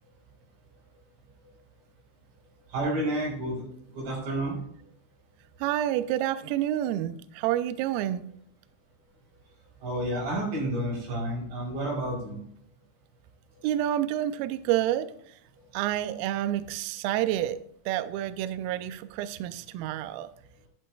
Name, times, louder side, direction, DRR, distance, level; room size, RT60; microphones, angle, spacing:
voice 1, 2.7-3.7 3.9-4.5 9.8-12.4, right 1 dB, 70° right, -3 dB, 6.6 m, -30 dB
voice 2, 5.6-8.2 13.6-15.2 15.7-20.3, right 12 dB, 90° right, 12 dB, 2.1 m, -29 dB
11.0 x 10.5 x 2.3 m, 0.68 s
omnidirectional pair, 4.9 m